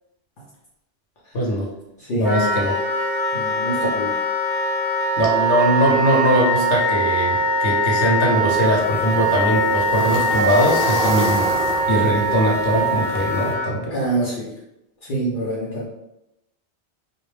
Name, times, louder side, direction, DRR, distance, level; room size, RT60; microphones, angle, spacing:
voice 1, 1.3-1.7 2.1-2.7 5.2-11.5 11.9-13.8, equal, 80° left, -2 dB, 1.0 m, -21 dB
voice 2, 2.0-2.5 3.3-4.2 13.9-14.5 15.0-15.9, right 1 dB, 55° left, -6 dB, 0.7 m, -25 dB
Wind instrument woodwind instrument, 2.2-13.7, right 1 dB, 15° right, 0.7 m, -22 dB
sound 1, 8.5-13.5, right 1 dB, 60° right, 0.7 m, -30 dB
2.4 x 2.0 x 3.1 m, 0.88 s
omnidirectional pair, 1.1 m